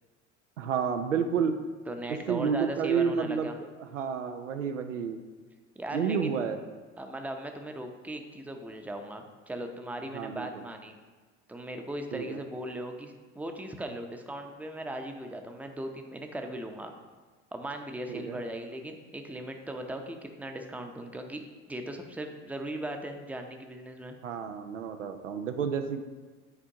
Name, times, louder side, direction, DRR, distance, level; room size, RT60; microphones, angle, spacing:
voice 1, 0.6-1.5 2.1-3.5 3.8-5.2 5.9-6.6 10.1-10.6 12.1-12.4 18.1-18.4 24.2-26.0, right 6 dB, 90° right, 7 dB, 0.5 m, -30 dB
voice 2, 1.9-3.5 5.8-6.3 7.0-11.0 11.5-16.9 17.5-21.4 21.7-24.1, right 1 dB, 5° right, 4 dB, 0.6 m, -38 dB
8.8 x 4.4 x 2.8 m, 1.4 s
hypercardioid pair, 65°, 36 cm